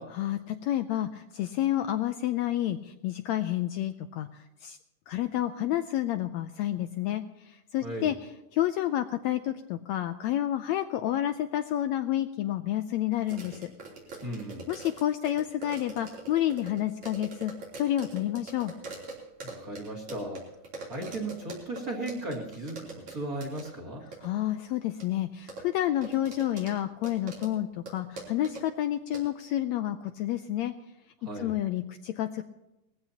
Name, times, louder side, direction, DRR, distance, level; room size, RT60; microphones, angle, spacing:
voice 1, 0.1-4.8 5.1-8.2 8.5-13.7 14.7-18.7 24.2-30.7 31.4-32.4, left 12 dB, 80° left, 8 dB, 1.7 m, -30 dB
voice 2, 7.8-8.1 14.2-14.7 19.4-20.4 20.9-24.1 31.2-31.6, right 1 dB, 30° right, 1 dB, 2.9 m, -36 dB
sound 1, 13.3-21.8 22.1-23.2 23.4-23.7 24.1-24.3 25.0-25.1 25.5-26.7 27.0-27.5 27.9-28.0 28.2-28.6 29.1-29.2, right 3 dB, 60° right, 4.7 m, -42 dB
20.0 x 15.5 x 2.9 m, 0.94 s
omnidirectional pair, 3.6 m